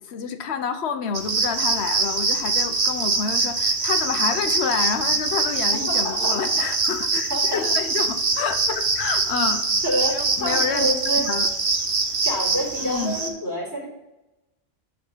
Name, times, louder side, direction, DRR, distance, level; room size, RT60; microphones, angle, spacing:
voice 1, 0.1-9.6 10.1-10.9 11.2-11.5 12.8-13.2, left 6 dB, 75° left, 9 dB, 1.0 m, -28 dB
sound 1, 1.1-13.3, right 3 dB, 55° right, 1.3 m, -24 dB
voice 2, 5.7-6.5 7.3-7.7 9.8-11.3 12.2-13.8, equal, 15° right, -7 dB, 3.4 m, -28 dB
11.0 x 4.1 x 5.4 m, 0.98 s
omnidirectional pair, 1.1 m